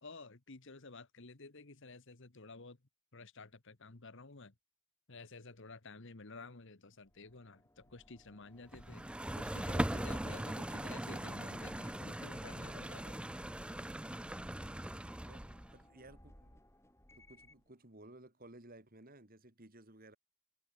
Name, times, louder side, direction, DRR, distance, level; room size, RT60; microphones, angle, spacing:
voice 1, 0.0-2.8 3.1-4.5 5.1-9.1 9.4-13.2, left 3 dB, 55° left, 1.4 m, -52 dB
sound 1, 7.1-17.7, equal, 10° left, 6.9 m, -60 dB
sound 2, 8.7-15.7, right 1 dB, 5° right, 0.4 m, -40 dB
voice 2, 15.2-16.6 17.1-20.2, right 1 dB, 40° right, 2.9 m, -57 dB
head